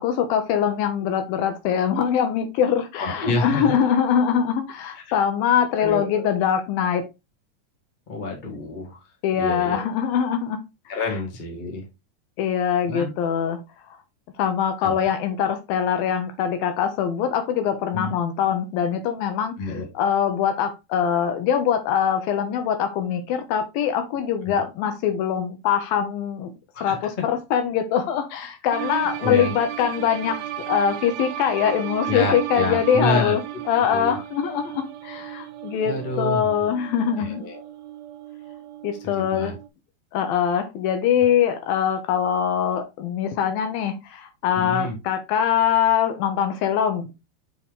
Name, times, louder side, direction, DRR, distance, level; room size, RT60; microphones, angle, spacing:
voice 1, 0.0-7.1 9.2-10.6 12.4-14.0 14.4-26.5 26.8-33.4 33.7-37.4 38.8-39.5 40.1-47.1, left 8 dB, 75° left, 7 dB, 2.3 m, -23 dB
voice 2, 3.0-3.8 5.8-6.2 8.1-9.0 9.4-9.9 10.9-11.9 12.8-13.1 14.8-15.0 17.9-18.1 19.6-19.9 24.4-24.5 26.7-27.0 28.4-28.5 29.2-29.5 32.1-33.3 33.9-34.2 35.8-36.5 37.2-37.6 39.0-39.5 44.5-45.0, left 2 dB, 35° left, -1 dB, 0.7 m, -28 dB
sound 1, 28.7-39.7, right 13 dB, 85° right, 2.8 m, -35 dB
7.1 x 4.5 x 3.6 m, 0.25 s
omnidirectional pair, 4.7 m